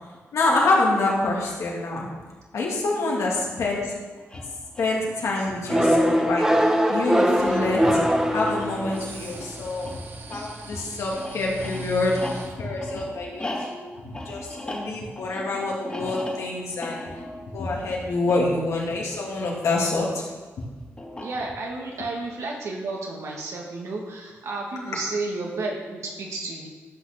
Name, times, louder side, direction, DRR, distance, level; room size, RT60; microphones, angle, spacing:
voice 1, 0.3-2.1 2.5-4.0 4.8-10.0 10.3-17.0 17.4-20.2 20.6-20.7, left 2 dB, 80° left, -3 dB, 2.9 m, -26 dB
sound 1, 4.2-19.9 21.0-21.8, left 1 dB, 20° left, 2.3 m, -39 dB
sound 2, 5.7-9.2, equal, 10° right, 1.2 m, -21 dB
sound 3, 7.4-12.5, right 1 dB, 45° right, 1.5 m, -40 dB
voice 2, 21.2-26.7, right 3 dB, 80° right, -2 dB, 2.6 m, -32 dB
12.0 x 6.6 x 6.2 m, 1.3 s
cardioid pair, 90°, 5 cm